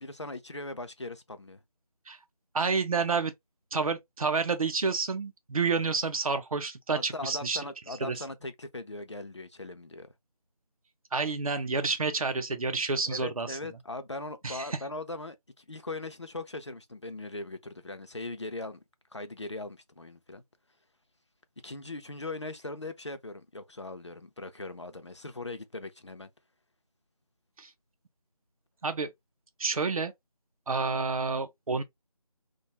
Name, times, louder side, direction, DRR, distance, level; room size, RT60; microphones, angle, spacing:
voice 1, 0.0-1.6 6.9-10.1 13.1-18.8 19.1-20.4 21.6-26.3, left 2 dB, 45° left, 0.4 m, -40 dB
voice 2, 2.5-3.3 3.7-7.6 8.0-8.2 11.1-13.6 14.4-14.7 27.6-27.7 28.8-29.1 29.6-30.1 30.7-31.8, right 4 dB, 65° right, 0.6 m, -29 dB
2.6 x 2.3 x 2.7 m
figure-of-eight pair, 175°, 20 cm